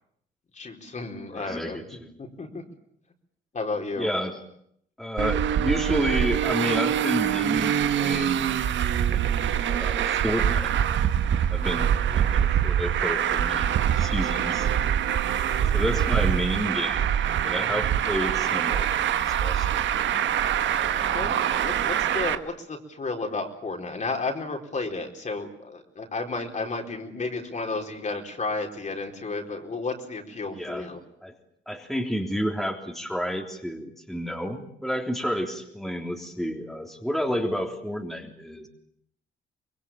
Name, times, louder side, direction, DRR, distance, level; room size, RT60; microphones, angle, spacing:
voice 1, 0.5-2.6 3.5-4.1 15.4-16.1 21.1-31.0, left 3 dB, 35° left, 3 dB, 4.4 m, -33 dB
voice 2, 1.3-2.1 4.0-4.4 5.0-8.6 9.7-10.8 11.5-14.7 15.7-17.1 17.4-19.9 20.8-21.3 30.5-30.9 31.2-31.3 31.7-38.7, equal, ahead, 2 dB, 3.5 m, -30 dB
Traffic noise roadway noise, 5.2-22.4, right 9 dB, 70° right, 1.4 m, -24 dB
25.0 x 21.0 x 8.9 m, 0.70 s
cardioid pair, 90°, 20 cm